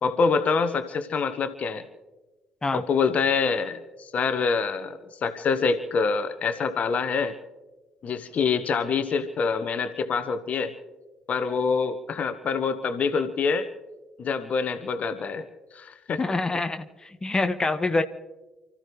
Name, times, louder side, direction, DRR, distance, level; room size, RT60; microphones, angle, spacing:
voice 1, 0.0-1.8 2.7-7.3 8.0-10.7 11.3-13.7 14.2-15.4 15.7-16.4, left 5 dB, 45° left, 10 dB, 1.2 m, -26 dB
voice 2, 16.2-18.0, left 3 dB, 20° left, 7 dB, 1.3 m, -26 dB
29.0 x 14.5 x 3.2 m, 1.2 s
figure-of-eight pair, 45°, 3 cm